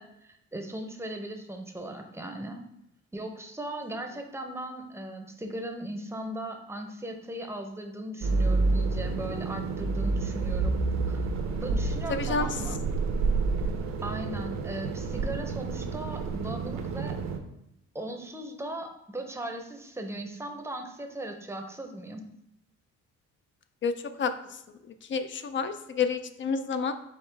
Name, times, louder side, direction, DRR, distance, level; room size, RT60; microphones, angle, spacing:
voice 1, 0.0-2.6 3.1-10.8 11.1-11.3 11.6-12.8 14.0-17.2 17.9-22.2, right 1 dB, 10° right, 4 dB, 0.6 m, -38 dB
sound 1, 8.2-17.4, right 3 dB, 65° right, 0.6 m, -29 dB
voice 2, 12.1-12.5 23.8-23.9 24.2-24.3 25.1-26.9, left 5 dB, 40° left, 10 dB, 0.4 m, -28 dB
4.7 x 3.2 x 3.4 m, 0.83 s
cardioid pair, 90°, 30 cm